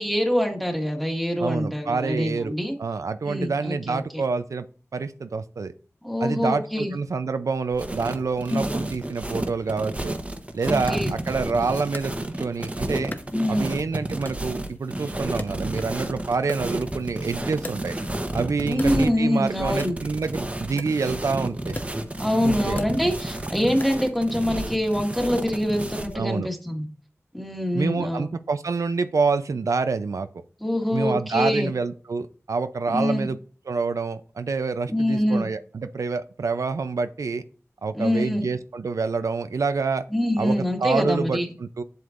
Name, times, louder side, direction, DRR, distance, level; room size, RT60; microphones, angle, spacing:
voice 1, 0.0-2.7 3.2-4.2 6.0-6.9 8.5-8.7 10.6-11.1 13.3-13.7 18.6-20.0 22.2-26.9 27.3-28.2 30.6-31.7 32.9-33.3 34.9-35.5 37.9-38.4 40.1-41.5, left 1 dB, ahead, 2 dB, 1.7 m, -25 dB
voice 2, 1.4-2.5 2.8-4.6 4.9-5.7 6.2-10.1 10.5-13.1 13.5-17.9 18.3-21.8 22.4-22.8 26.1-26.5 27.7-30.3 30.9-33.4 33.7-37.4 37.8-40.0 40.4-41.8, right 4 dB, 80° right, 10 dB, 0.5 m, -27 dB
sound 1, 7.7-26.2, right 1 dB, 25° right, 0.9 m, -31 dB
Wood, 10.9-12.7 13.1-13.9 14.3-16.1 16.4-18.3 18.7-24.2, left 2 dB, 35° left, 0.9 m, -41 dB
7.8 x 7.1 x 2.5 m, 0.39 s
wide cardioid pair, 75°, 5 cm